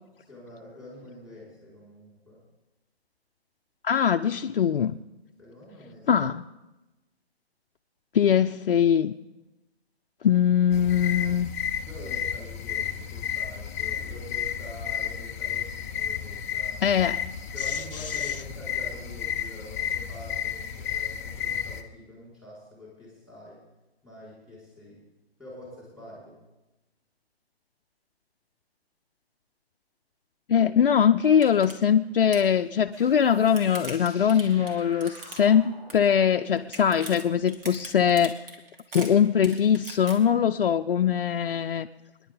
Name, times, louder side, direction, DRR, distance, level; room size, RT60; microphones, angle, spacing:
voice 1, 0.3-2.4 5.4-6.3 11.8-16.9 17.5-23.6 24.0-25.0 25.4-26.4, left 1 dB, 5° right, -5 dB, 5.2 m, -45 dB
voice 2, 3.8-5.0 6.1-6.4 8.1-9.1 10.2-11.5 16.8-17.2 30.5-38.4 38.9-41.9, left 8 dB, 60° left, 8 dB, 0.6 m, -22 dB
sound 1, 10.7-21.8, left 9 dB, 15° left, 0.5 m, -32 dB
sound 2, 30.8-30.9 31.2-31.7 32.0-32.5 33.1-35.6 35.9-36.3 36.6-40.1, right 2 dB, 60° right, 2.7 m, -41 dB
sound 3, 32.9-38.2, right 1 dB, 25° right, 4.2 m, -51 dB
27.0 x 10.5 x 3.9 m, 1.0 s
figure-of-eight pair, 140°, 32 cm